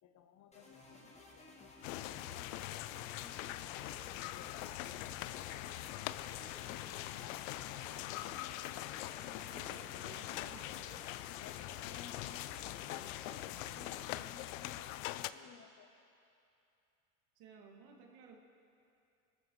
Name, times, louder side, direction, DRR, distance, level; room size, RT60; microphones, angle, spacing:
voice 1, 0.0-3.8 4.2-7.4 8.1-8.7 11.4-13.0 13.4-15.9, left 8 dB, 40° left, 9 dB, 1.0 m, -59 dB
sound 1, 0.5-14.2, left 2 dB, 15° left, 2.1 m, -57 dB
sound 2, 1.8-15.3, left 15 dB, 65° left, 0.6 m, -43 dB
voice 2, 9.5-10.8 17.4-18.4, right 5 dB, 55° right, 1 dB, 2.4 m, -56 dB
23.5 x 14.5 x 3.2 m, 2.7 s
hypercardioid pair, 75°, 43 cm